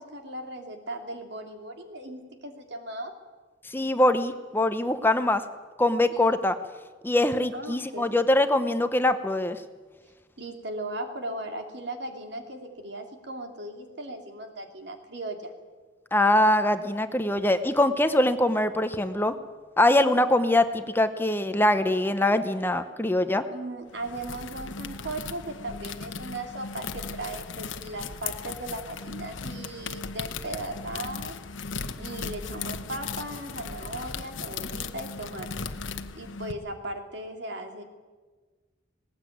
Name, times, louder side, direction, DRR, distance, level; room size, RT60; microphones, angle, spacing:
voice 1, 0.0-3.1 6.1-6.3 7.5-8.2 10.4-15.5 23.5-31.4 32.0-35.7 36.1-37.8, right 1 dB, 65° right, 5 dB, 2.9 m, -37 dB
voice 2, 3.6-5.4 5.8-6.5 7.0-9.6 16.1-19.3 19.8-23.4, left 1 dB, 10° left, 9 dB, 0.8 m, -23 dB
sound 1, 23.9-36.5, left 5 dB, 90° left, 1.1 m, -37 dB
19.5 x 18.0 x 9.3 m, 1.4 s
head